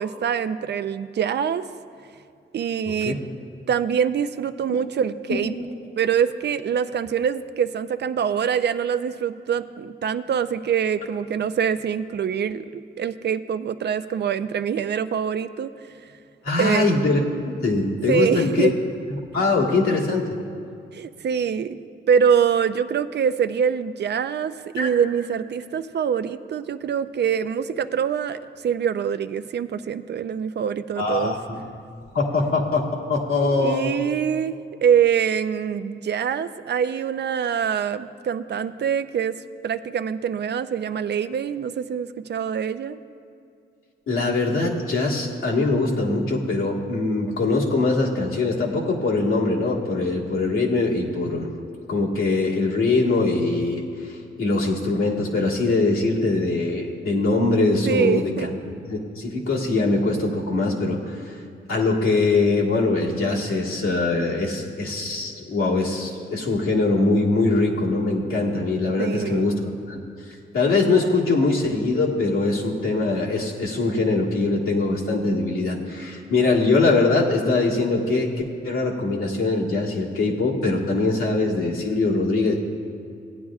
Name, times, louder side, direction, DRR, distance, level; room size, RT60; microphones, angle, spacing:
voice 1, 0.0-1.7 2.5-3.2 3.7-5.5 6.0-15.7 16.6-16.9 18.1-18.7 20.9-21.8 22.1-31.4 33.4-34.5 34.8-43.0 57.9-58.5 69.0-69.5, right 7 dB, 55° right, 12 dB, 0.4 m, -24 dB
voice 2, 16.4-18.7 19.1-20.4 24.8-24.9 31.0-31.6 32.1-33.9 44.1-51.5 51.9-58.5 58.9-61.3 61.7-69.6 69.9-70.0 70.5-78.3 78.6-82.5, left 3 dB, 85° left, -4 dB, 1.7 m, -22 dB
17.0 x 9.5 x 2.4 m, 2.5 s
cardioid pair, 70°, 21 cm